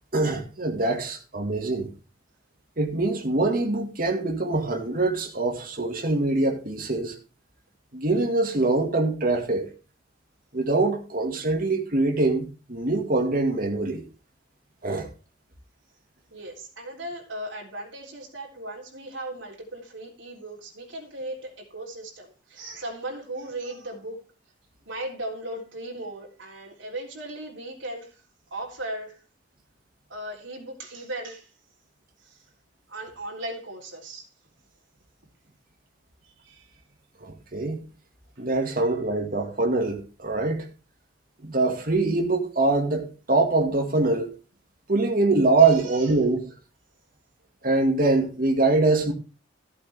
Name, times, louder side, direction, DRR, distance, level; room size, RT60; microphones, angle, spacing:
voice 1, 0.1-1.9 2.8-7.2 7.9-9.7 10.5-14.1 14.8-15.1 37.2-37.8 38.4-40.7 41.4-44.3 44.9-46.5 47.6-49.1, right 3 dB, 45° right, 2.0 m, -24 dB
voice 2, 16.3-24.2 24.9-28.1 28.5-29.2 30.1-31.5 32.2-32.4 32.9-34.3 36.4-36.8 45.6-46.1, right 1 dB, 80° right, 3.7 m, -37 dB
14.5 x 8.3 x 3.6 m
head